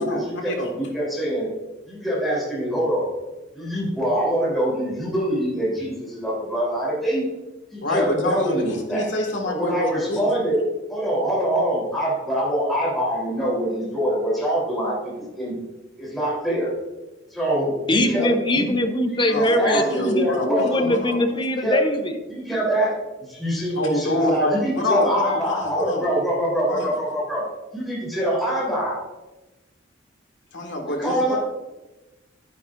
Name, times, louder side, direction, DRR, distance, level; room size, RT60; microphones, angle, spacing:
voice 1, 0.0-1.5 1.9-3.1 3.5-7.3 7.7-9.1 9.5-10.6 10.9-15.6 16.0-16.7 17.3-18.7 19.1-20.9 21.6-21.8 22.3-22.9 23.3-27.4 27.7-29.0 30.8-31.4, equal, ahead, -7 dB, 3.6 m, -24 dB
voice 2, 7.8-10.3 19.3-21.2 23.8-26.0 26.7-26.9 30.5-31.4, left 1 dB, 75° left, 1 dB, 1.8 m, -26 dB
voice 3, 17.9-22.2, left 1 dB, 25° left, 6 dB, 0.8 m, -22 dB
10.5 x 10.0 x 2.6 m, 1.1 s
head